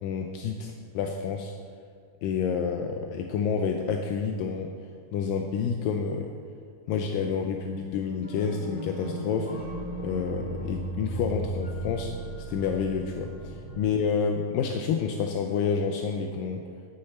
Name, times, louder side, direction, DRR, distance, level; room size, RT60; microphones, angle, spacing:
voice 1, 0.0-1.5 2.2-4.7 5.1-6.3 6.9-9.5 10.0-12.1 12.5-16.6, left 6 dB, 80° left, 3 dB, 2.2 m, -29 dB
sound 1, 8.2-13.8, right 1 dB, 30° left, 0.9 m, -36 dB
13.5 x 9.8 x 4.3 m, 2.3 s
omnidirectional pair, 4.3 m